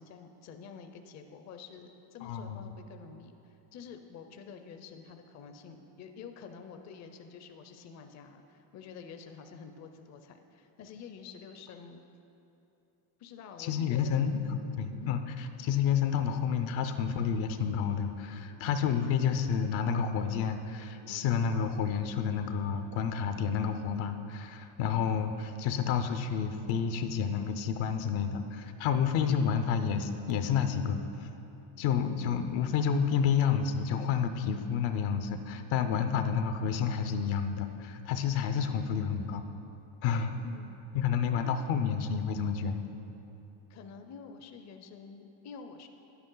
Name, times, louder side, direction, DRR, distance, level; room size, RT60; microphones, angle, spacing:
voice 1, 0.0-12.0 13.2-14.3 14.9-15.1 21.1-21.4 40.4-40.8 41.3-41.5 43.7-45.9, left 6 dB, 35° left, 6 dB, 0.5 m, -48 dB
voice 2, 2.2-2.7 13.6-31.3 31.8-39.4 40.0-40.4 40.9-42.8, left 7 dB, 70° left, 8 dB, 0.7 m, -30 dB
9.6 x 8.2 x 3.8 m, 2.9 s
cardioid pair, 115°, 48 cm